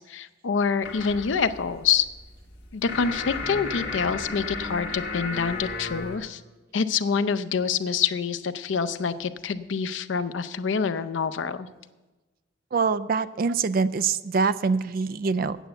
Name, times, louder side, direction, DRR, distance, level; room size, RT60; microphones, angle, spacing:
voice 1, 0.1-2.1 2.7-6.4 6.7-11.7, left 6 dB, 80° left, 12 dB, 0.5 m, -26 dB
sound 1, 0.8-6.2, left 3 dB, 65° left, 1.9 m, -34 dB
voice 2, 12.7-15.6, right 5 dB, 50° right, 15 dB, 0.4 m, -24 dB
9.1 x 8.0 x 7.8 m, 1.2 s
head